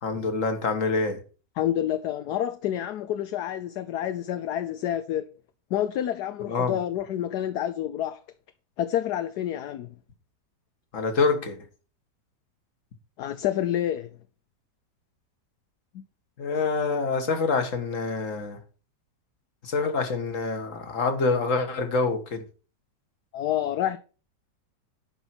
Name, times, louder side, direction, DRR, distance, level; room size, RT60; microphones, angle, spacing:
voice 1, 0.0-1.2 6.5-6.8 10.9-11.6 16.4-18.6 19.6-22.4, left 4 dB, 50° left, 1.8 m, -26 dB
voice 2, 1.6-5.3 5.7-8.2 8.8-9.9 13.2-14.1 15.9-16.0 23.3-24.0, left 11 dB, 70° left, 1.2 m, -28 dB
11.0 x 5.6 x 6.0 m
omnidirectional pair, 1.9 m